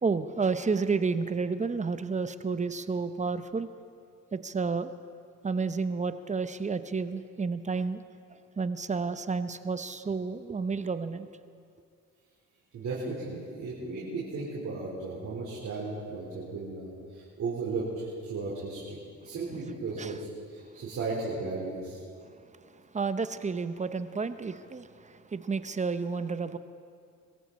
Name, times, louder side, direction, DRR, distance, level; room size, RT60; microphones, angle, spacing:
voice 1, 0.0-3.7 4.3-4.9 5.4-8.0 8.6-11.3 20.0-20.2 22.9-26.6, right 4 dB, 25° right, 11 dB, 0.7 m, -31 dB
voice 2, 12.7-19.0 19.2-22.0, right 3 dB, 65° right, -7 dB, 4.2 m, -35 dB
22.5 x 14.5 x 4.2 m, 2.3 s
cardioid pair, 90°, 30 cm